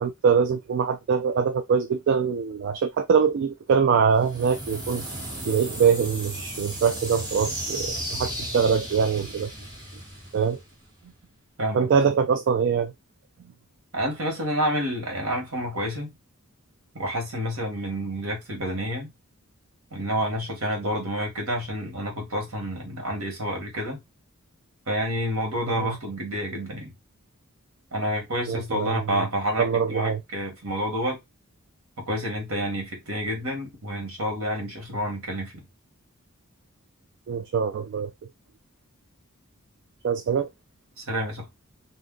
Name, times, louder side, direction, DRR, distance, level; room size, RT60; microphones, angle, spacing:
voice 1, 0.0-5.0 5.4-9.5 10.3-10.6 11.7-12.9 25.7-26.0 28.5-29.3 29.6-30.2 37.3-38.1 40.0-40.5, right 6 dB, 55° right, 0.3 m, -23 dB
sound 1, 4.1-11.0, right 1 dB, 20° right, 1.3 m, -35 dB
voice 2, 13.9-16.2 16.9-19.1 19.9-24.0 24.9-26.9 27.9-31.2 32.0-35.6 41.0-41.5, equal, 75° right, 1.4 m, -29 dB
2.6 x 2.3 x 3.7 m
head